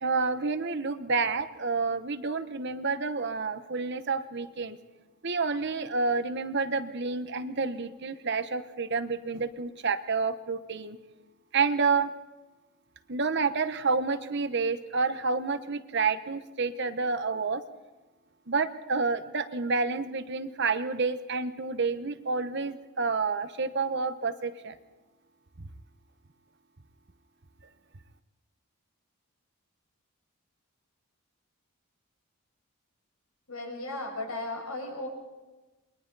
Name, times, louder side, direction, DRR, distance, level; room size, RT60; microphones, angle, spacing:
voice 1, 0.0-4.8 5.2-11.0 11.5-12.1 13.1-17.6 18.5-24.8 25.6-25.7, right 4 dB, 50° right, 10 dB, 1.0 m, -29 dB
voice 2, 33.5-35.1, left 2 dB, 75° left, 2 dB, 6.7 m, -35 dB
29.0 x 22.0 x 4.1 m, 1.2 s
head